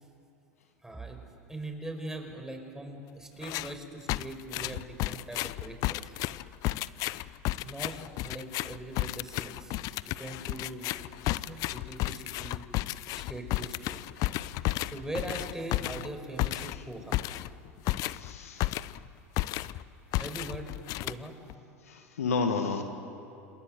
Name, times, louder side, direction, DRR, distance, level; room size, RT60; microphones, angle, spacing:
voice 1, 0.8-1.2 1.5-6.1 7.6-9.7 10.0-11.0 11.5-12.6 13.1-14.0 14.9-17.2 20.2-21.3, right 1 dB, 5° right, 4 dB, 5.1 m, -41 dB
sound 1, 3.4-3.8 4.1-19.1 19.4-19.8 20.1-21.5, left 17 dB, 50° left, 0.6 m, -33 dB
voice 2, 18.1-18.8 21.9-22.8, left 4 dB, 75° left, 6 dB, 1.8 m, -31 dB
28.5 x 27.0 x 6.8 m, 2.7 s
figure-of-eight pair, 80°, 8 cm